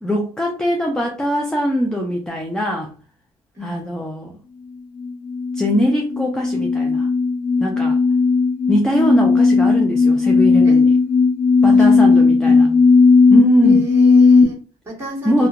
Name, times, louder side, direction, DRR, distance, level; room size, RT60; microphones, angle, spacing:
voice 1, 0.0-2.9 3.6-4.4 5.5-7.1 7.6-8.0 8.7-10.9 11.6-12.7 13.3-13.8 15.3-15.5, equal, 5° left, 0.4 m, -21 dB
sound 1, 5.0-14.4, left 4 dB, 55° left, 0.8 m, -15 dB
voice 2, 11.7-12.9 13.6-15.5, right 2 dB, 15° right, 1.5 m, -32 dB
2.9 x 2.1 x 2.4 m
cardioid pair, 110°, 17 cm